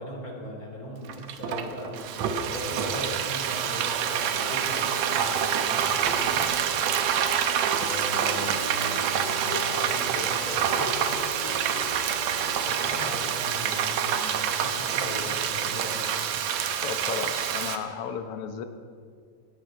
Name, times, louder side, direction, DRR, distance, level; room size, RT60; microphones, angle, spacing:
voice 1, 0.0-2.0 2.5-6.4 7.7-9.1 9.4-11.5 12.1-16.3, left 1 dB, 30° left, -1 dB, 3.1 m, -39 dB
Frying (food), 1.1-17.8, right 8 dB, 70° right, 2.0 m, -27 dB
sound 1, 7.8-13.0, left 2 dB, 45° left, 1.9 m, -39 dB
voice 2, 16.8-18.6, left 7 dB, 65° left, 8 dB, 1.5 m, -34 dB
18.0 x 17.5 x 4.5 m, 2.1 s
omnidirectional pair, 3.6 m